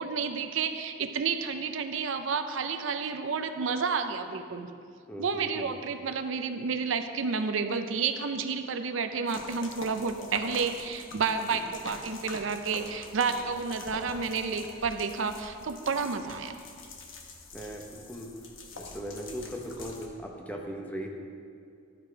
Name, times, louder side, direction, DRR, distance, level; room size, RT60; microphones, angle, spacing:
voice 1, 0.0-4.7 5.2-16.5, right 5 dB, 85° right, 8 dB, 0.5 m, -30 dB
voice 2, 5.1-5.7 17.5-18.3 18.7-21.1, equal, 10° left, 0 dB, 0.8 m, -38 dB
sound 1, 9.3-20.1, left 3 dB, 90° left, 1.0 m, -45 dB
11.5 x 5.1 x 4.6 m, 2.4 s
head